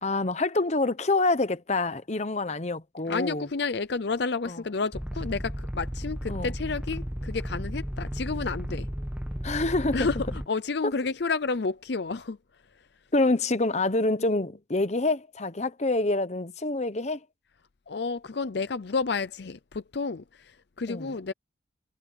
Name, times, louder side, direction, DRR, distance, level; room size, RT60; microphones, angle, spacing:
voice 1, 0.0-3.5 4.4-4.6 6.3-6.6 9.4-10.1 10.8-10.9 13.1-17.2 20.9-21.1, left 2 dB, 35° left, 0.9 m, -26 dB
voice 2, 3.1-8.9 9.9-10.2 10.5-12.4 17.9-20.2 20.8-21.3, left 4 dB, 55° left, 0.6 m, -30 dB
sound 1, 4.9-10.5, equal, 5° right, 1.2 m, -34 dB
head